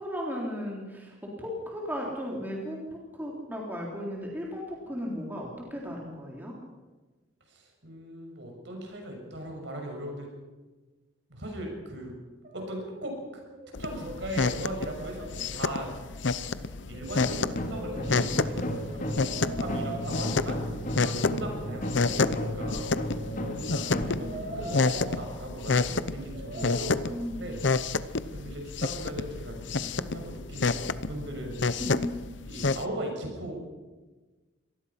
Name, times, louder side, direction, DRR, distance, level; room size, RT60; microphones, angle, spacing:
voice 1, 0.0-6.5 27.1-27.5 31.8-32.2, equal, 10° right, -2 dB, 3.6 m, -35 dB
voice 2, 7.5-10.3 11.3-12.1 12.5-13.4 13.8-15.9 16.9-23.2 23.5-31.6 32.4-33.7, right 1 dB, 60° right, 2 dB, 6.5 m, -39 dB
Brass instrument, 12.4-13.1 13.4-15.9 16.9-20.1 21.5-25.3 26.3-26.8, right 2 dB, 45° right, 6.5 m, -43 dB
sound 1, 13.7-32.8, left 4 dB, 60° left, 0.8 m, -30 dB
sound 2, 17.2-25.9, equal, 40° left, 2.4 m, -34 dB
25.0 x 19.0 x 5.8 m, 1.2 s
head